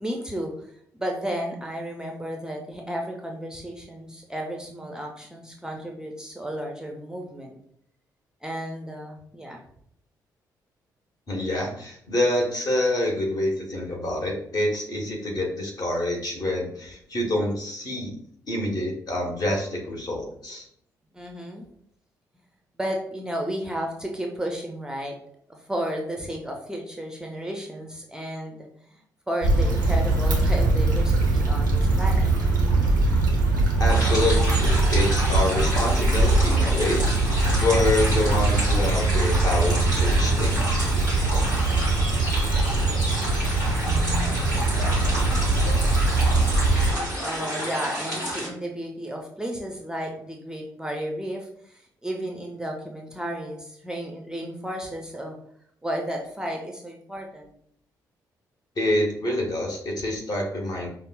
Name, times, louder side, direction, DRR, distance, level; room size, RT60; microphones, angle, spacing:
voice 1, 0.0-7.5 8.4-9.6 21.1-21.6 22.8-25.2 25.5-29.0 29.3-32.3 41.7-42.0 46.6-55.4 55.8-57.5, equal, 5° right, 1 dB, 0.5 m, -33 dB
voice 2, 11.3-18.1 18.5-20.7 33.8-37.1 37.6-40.8 58.8-60.9, left 1 dB, 40° left, 0 dB, 1.1 m, -26 dB
Stream / Traffic noise roadway noise / Trickle dribble, 29.4-46.9, right 2 dB, 85° right, 0.5 m, -22 dB
sound 1, 33.9-48.5, equal, 85° left, 1.0 m, -30 dB
5.1 x 2.0 x 2.3 m, 0.67 s
figure-of-eight pair, 40°, 10 cm